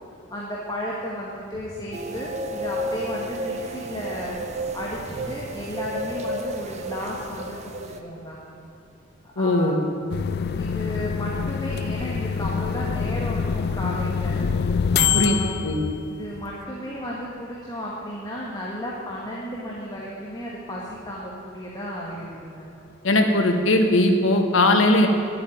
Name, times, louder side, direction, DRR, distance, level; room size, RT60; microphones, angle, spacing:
voice 1, 0.3-4.4 4.7-8.4 9.4-9.8 10.5-14.5 14.9-15.5 16.1-22.7, equal, 20° left, -5 dB, 1.9 m, -33 dB
sound 1, 1.9-8.0, equal, 35° right, 0.9 m, -32 dB
voice 2, 9.4-9.8 15.1-15.8 23.0-25.1, left 1 dB, 80° left, 4 dB, 1.5 m, -19 dB
sound 2, 10.1-16.5, left 6 dB, 55° left, 0.4 m, -25 dB
11.0 x 8.5 x 9.3 m, 2.7 s
head